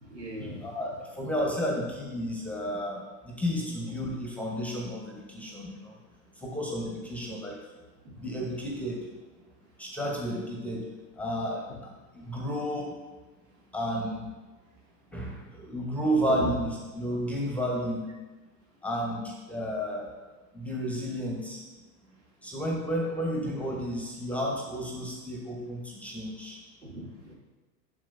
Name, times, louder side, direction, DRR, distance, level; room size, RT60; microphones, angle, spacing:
voice 1, 0.0-0.9 8.0-8.2 16.3-16.5 26.8-27.3, right 1 dB, 90° right, -4 dB, 2.1 m, -38 dB
voice 2, 0.6-6.0 6.4-7.6 8.2-9.0 9.8-10.9 11.2-12.9 13.7-14.3 15.1-18.1 18.8-20.1 20.5-21.6 22.4-26.6, equal, 5° left, -1 dB, 0.9 m, -32 dB
7.5 x 6.2 x 2.5 m, 1.2 s
hypercardioid pair, 110°, 49 cm